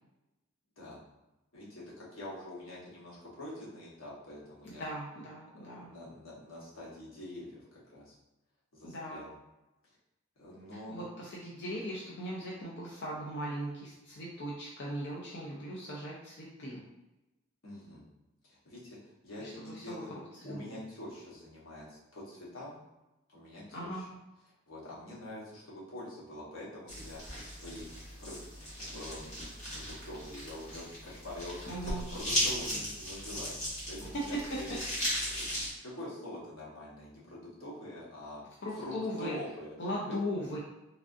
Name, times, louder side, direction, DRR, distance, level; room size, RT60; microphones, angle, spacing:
voice 1, 1.5-4.9 5.8-8.1 8.7-9.3 9.8-10.0 10.4-11.1 17.6-18.1 18.4-20.2 20.4-22.8 23.3-24.1 24.7-28.4 28.9-34.8 35.3-35.4 35.8-38.4 38.7-39.7 40.1-40.2, left 1 dB, 85° left, -6 dB, 1.1 m, -45 dB
voice 2, 4.6-5.9 8.8-9.2 10.9-16.8 19.4-20.8 23.7-24.0 31.7-32.0 34.3-34.4 38.6-39.4 39.8-40.6, equal, 60° left, -5 dB, 0.5 m, -39 dB
sound 1, 26.9-35.7, equal, 40° left, 1.3 m, -37 dB
3.2 x 2.4 x 2.5 m, 0.98 s
head